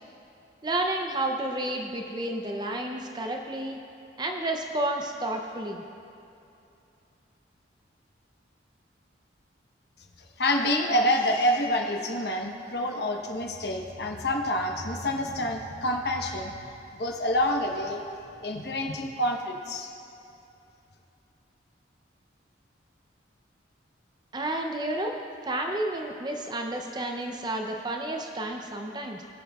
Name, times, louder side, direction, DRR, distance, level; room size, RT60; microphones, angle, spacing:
voice 1, 0.6-3.8 4.2-5.8 24.3-25.2 25.5-29.2, right 1 dB, 20° right, 2 dB, 0.5 m, -31 dB
voice 2, 10.4-16.6 16.9-18.0 18.4-19.9, left 1 dB, 55° left, 2 dB, 1.0 m, -27 dB
21.0 x 7.7 x 2.4 m, 2.7 s
head